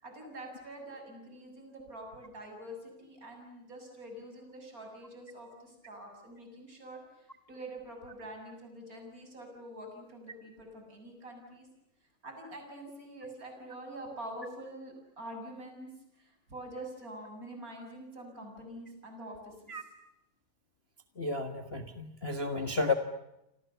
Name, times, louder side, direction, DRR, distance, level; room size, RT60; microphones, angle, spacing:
voice 1, 0.0-11.7 12.2-15.9 16.2-19.8, right 1 dB, 25° right, 3 dB, 7.4 m, -46 dB
voice 2, 21.2-22.9, left 3 dB, 65° left, 7 dB, 0.6 m, -32 dB
29.0 x 26.5 x 7.0 m, 0.85 s
omnidirectional pair, 4.0 m